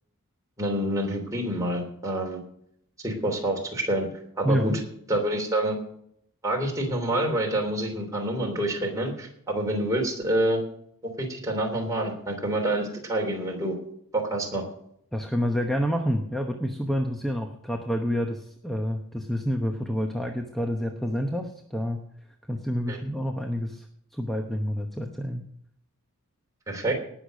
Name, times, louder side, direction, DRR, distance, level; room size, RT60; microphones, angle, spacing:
voice 1, 0.6-2.4 3.0-4.1 4.4-4.8 5.1-5.7 6.4-10.6 11.2-13.8 14.1-14.6 22.9-23.0 26.7-26.9, right 1 dB, 15° right, 0 dB, 3.1 m, -27 dB
voice 2, 4.4-4.8 15.1-22.0 22.5-23.9 24.1-25.4, equal, ahead, 3 dB, 0.9 m, -28 dB
18.5 x 6.6 x 6.3 m, 0.70 s
head